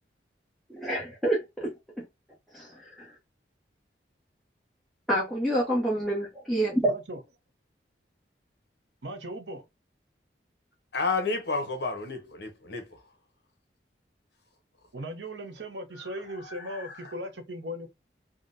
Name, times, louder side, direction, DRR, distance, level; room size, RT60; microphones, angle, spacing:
voice 1, 0.7-1.7 2.5-3.1 5.1-6.9, right 1 dB, ahead, 0.8 m, -27 dB
voice 2, 6.8-7.2 9.0-9.6 14.9-17.9, equal, 80° right, 0.8 m, -38 dB
voice 3, 10.9-13.0 16.0-16.1 16.4-17.1, left 3 dB, 70° left, 1.0 m, -32 dB
3.6 x 2.2 x 2.5 m
head